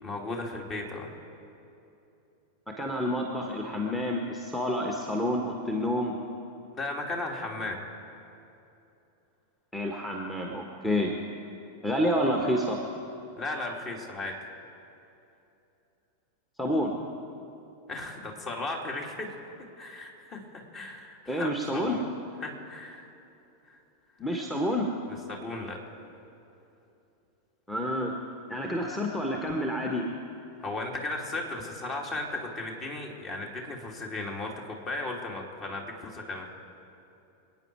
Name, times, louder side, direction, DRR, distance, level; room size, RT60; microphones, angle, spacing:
voice 1, 0.0-1.1 6.7-7.8 13.4-14.4 17.9-19.3 19.8-22.0 22.4-23.1 23.7-23.8 25.3-25.8 30.6-36.5, left 2 dB, 30° left, 1 dB, 2.7 m, -36 dB
voice 2, 2.7-6.1 9.7-11.2 11.8-12.8 16.6-17.0 21.3-22.0 24.2-24.9 27.7-28.1 28.5-30.0, equal, 5° left, 0 dB, 1.5 m, -29 dB
26.5 x 9.6 x 4.7 m, 2.8 s
figure-of-eight pair, 90°, 0 cm